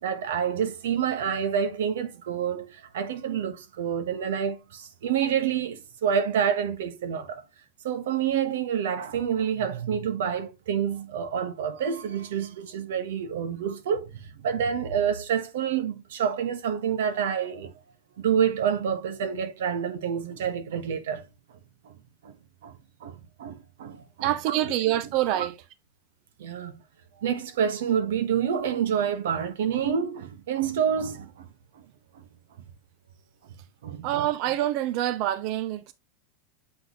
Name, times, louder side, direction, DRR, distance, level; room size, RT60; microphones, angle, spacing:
voice 1, 0.0-7.4 7.8-14.1 14.4-17.7 18.2-21.2 21.8-21.9 22.2-22.3 22.6-22.7 23.0-24.6 25.4-25.5 26.4-26.8 27.2-31.5 33.8-34.3, right 8 dB, 85° right, 1.2 m, -28 dB
voice 2, 24.2-25.6 34.0-35.9, right 13 dB, 40° right, 0.5 m, -26 dB
7.6 x 4.1 x 3.1 m
supercardioid pair, 170°, 0 cm